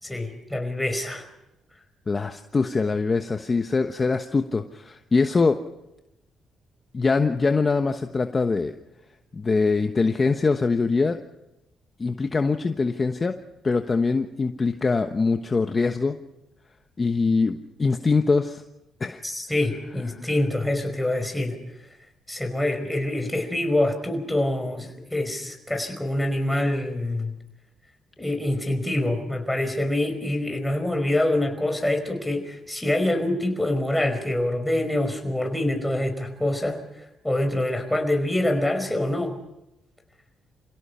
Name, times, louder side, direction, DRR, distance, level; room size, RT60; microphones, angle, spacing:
voice 1, 0.0-1.3 19.2-21.6 22.3-27.4 28.2-39.4, left 1 dB, 5° left, 5 dB, 5.1 m, -25 dB
voice 2, 2.1-5.6 6.9-8.7 9.3-11.2 12.0-13.3 13.6-16.2 17.0-18.6 19.0-19.2 20.1-20.2, left 4 dB, 30° left, 6 dB, 1.2 m, -23 dB
27.5 x 17.0 x 5.7 m, 0.91 s
cardioid pair, 90°, 0 cm